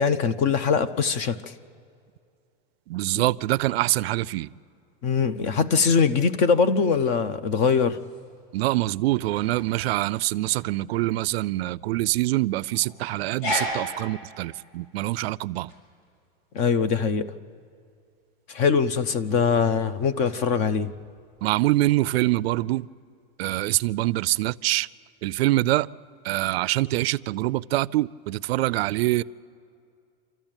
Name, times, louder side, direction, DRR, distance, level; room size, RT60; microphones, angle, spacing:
voice 1, 0.0-1.5 3.1-3.2 5.0-8.0 16.5-17.3 18.5-20.9, left 5 dB, 25° left, 0.4 m, -22 dB
voice 2, 2.9-4.5 8.5-15.7 21.4-22.9 23.4-24.9 25.2-25.9 26.2-29.2, right 17 dB, 85° right, 0.5 m, -25 dB
sound 1, 7.9-22.2, left 1 dB, 60° left, 7.4 m, -39 dB
26.5 x 14.0 x 8.9 m
supercardioid pair, 175°, 30 cm